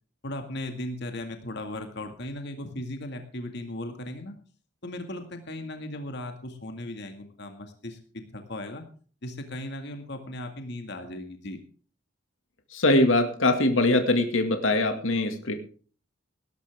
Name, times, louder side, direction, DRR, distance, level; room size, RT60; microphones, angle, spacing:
voice 1, 0.2-4.4 4.8-8.8 9.2-11.6, left 1 dB, 60° left, 5 dB, 2.1 m, -37 dB
voice 2, 12.7-15.5, left 2 dB, 80° left, 6 dB, 2.1 m, -22 dB
18.5 x 12.0 x 3.6 m, 0.41 s
head